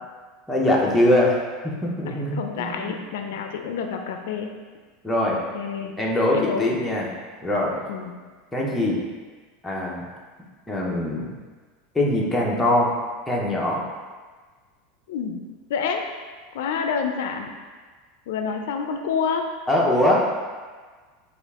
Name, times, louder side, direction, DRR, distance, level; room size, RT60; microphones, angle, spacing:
voice 1, 0.5-1.4 1.6-3.0 5.0-5.4 6.0-7.1 7.4-7.8 8.5-9.0 9.6-10.0 10.7-11.3 11.9-12.9 13.3-13.8 19.7-20.2, left 1 dB, 5° left, -4 dB, 0.7 m, -22 dB
voice 2, 2.1-4.5 5.3-6.0 6.3-6.7 7.9-8.1 15.1-15.4 15.7-16.0 16.5-17.5 18.3-19.5, left 6 dB, 80° left, 4 dB, 0.4 m, -28 dB
5.1 x 2.4 x 3.5 m, 1.4 s
supercardioid pair, 155°, 0 cm